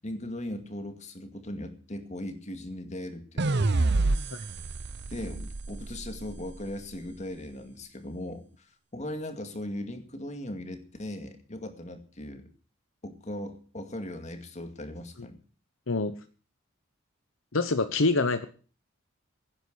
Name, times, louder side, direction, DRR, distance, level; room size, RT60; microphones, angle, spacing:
voice 1, 0.0-3.7 5.1-12.5 13.0-15.4, left 1 dB, 35° left, 7 dB, 2.2 m, -38 dB
sound 1, 3.4-6.6, right 2 dB, 55° right, 0.7 m, -28 dB
voice 2, 17.5-18.5, left 3 dB, 70° left, 10 dB, 0.9 m, -25 dB
17.0 x 10.0 x 6.3 m, 0.40 s
head